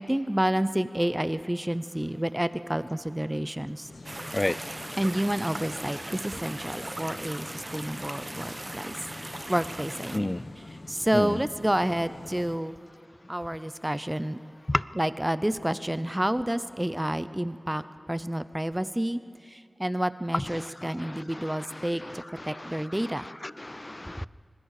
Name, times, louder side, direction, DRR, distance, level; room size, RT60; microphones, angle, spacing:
voice 1, 0.0-3.9 5.0-9.0 9.5-10.3 10.9-12.8 13.3-14.4 15.0-23.3, right 1 dB, 15° right, 13 dB, 0.7 m, -29 dB
sound 1, 3.8-12.6, left 2 dB, 75° left, 1.2 m, -46 dB
sound 2, 4.0-10.2, right 1 dB, 30° right, 1.0 m, -39 dB
voice 2, 10.1-10.4 11.1-11.4 14.7-14.8 20.3-22.8 23.4-24.3, left 1 dB, 30° left, 18 dB, 0.4 m, -31 dB
26.0 x 20.5 x 4.9 m, 2.5 s
wide cardioid pair, 60°, 0 cm